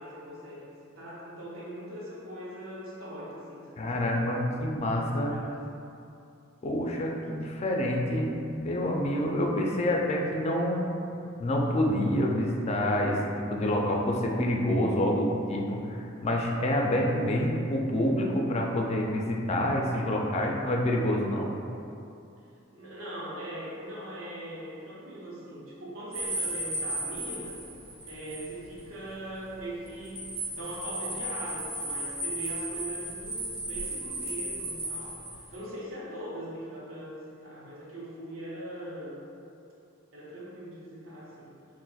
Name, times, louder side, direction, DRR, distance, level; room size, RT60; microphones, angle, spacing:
voice 1, 0.0-4.3 4.9-5.6 22.7-27.5 28.0-35.2 35.5-39.2 40.1-41.5, right 1 dB, 75° right, -7 dB, 0.9 m, -41 dB
voice 2, 3.8-5.3 6.6-10.8 11.4-15.8 16.2-21.5, left 1 dB, 30° left, 0 dB, 0.3 m, -27 dB
sound 1, 26.1-28.5 28.8-28.9 29.9-35.6, right 1 dB, 25° right, 0.7 m, -35 dB
4.0 x 2.5 x 2.3 m, 2.6 s
head